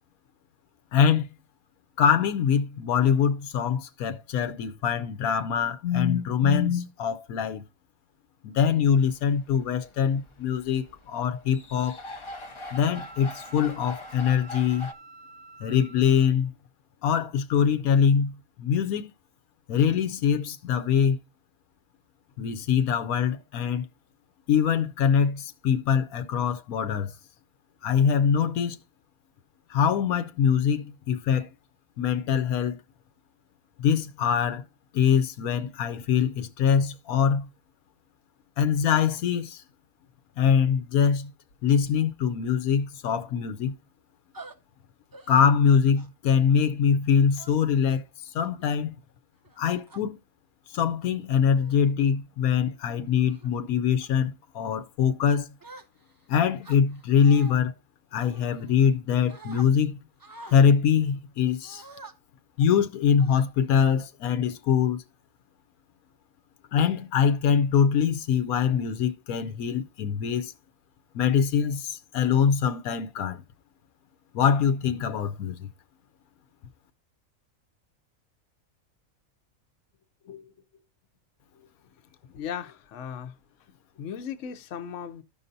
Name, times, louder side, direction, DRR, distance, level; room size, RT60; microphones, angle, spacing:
voice 1, 0.9-1.3 2.0-7.6 8.4-12.0 12.7-14.9 15.6-16.5 17.0-19.1 19.7-21.2 22.4-23.9 24.5-27.1 27.8-28.8 29.7-31.5 32.0-32.8 33.8-34.6 34.9-37.5 38.6-39.6 40.4-41.3 41.6-43.8 45.3-48.0 48.3-49.0 49.6-50.2 50.7-55.5 56.3-57.7 58.1-60.0 60.5-61.8 62.6-65.0 66.7-70.5 71.1-73.4 74.3-75.7, left 7 dB, 85° left, 1.1 m, -23 dB
sound 1, 8.8-14.9, left 1 dB, 35° left, 0.5 m, -43 dB
Wind instrument woodwind instrument, 12.3-16.3, right 3 dB, 65° right, 1.1 m, -49 dB
sound 2, 44.3-44.5 45.1-45.4 46.0-46.3 47.4-47.8 48.4-48.7 49.4-50.0 50.8-51.1 51.6-51.9 52.4-52.7 53.2-53.5 54.0-54.3 55.6-56.2 56.6-57.6 58.2-59.0 59.3-59.7 60.2-60.6 61.6-62.1 62.6-62.8 63.2-63.9, right 3 dB, 30° right, 0.3 m, -47 dB
voice 2, 80.2-80.8 81.5-81.7 82.3-83.3 83.9-85.2, left 8 dB, 65° left, 1.0 m, -37 dB
14.0 x 5.5 x 2.6 m
omnidirectional pair, 1.5 m